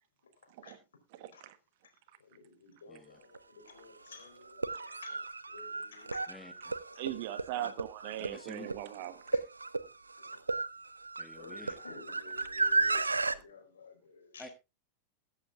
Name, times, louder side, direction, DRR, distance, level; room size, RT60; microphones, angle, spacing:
voice 1, 1.1-1.6 4.7-4.8 7.0-9.2 12.6-12.7, right 13 dB, 50° right, 1.2 m, -40 dB
voice 2, 2.2-6.6 6.9-7.0 9.0-9.4 10.2-10.3 11.4-14.5, left 4 dB, 65° left, 4.1 m, -53 dB
voice 3, 2.9-3.2 6.3-6.5 8.2-8.7 11.2-11.8 14.4-14.5, left 2 dB, 10° left, 1.4 m, -49 dB
sound 1, 3.3-3.4 4.5-13.4, right 3 dB, 80° right, 0.6 m, -34 dB
21.5 x 8.4 x 2.4 m
figure-of-eight pair, 90°, 0 cm